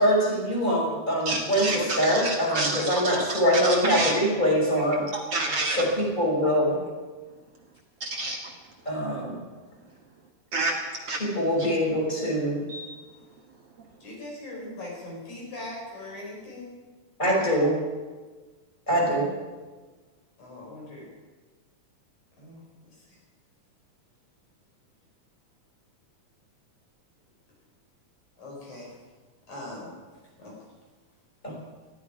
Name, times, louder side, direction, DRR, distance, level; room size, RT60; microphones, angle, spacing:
voice 1, 0.0-5.0 5.8-6.8 8.9-9.4 11.2-12.6 17.2-17.7 18.9-19.3 31.4-31.5, equal, 15° left, -3 dB, 5.6 m, -24 dB
voice 2, 1.3-4.1 5.1-5.8 8.0-8.4 10.5-10.8 11.1-11.2 11.6-11.7 12.7-12.9, right 2 dB, 55° right, 1 dB, 2.2 m, -29 dB
voice 3, 14.0-16.8 20.4-21.1 22.4-22.6 23.0-23.2 28.4-28.9 29.5-29.9 30.4-30.5, left 2 dB, 70° left, -2 dB, 6.6 m, -40 dB
20.0 x 15.0 x 4.9 m, 1.3 s
omnidirectional pair, 3.6 m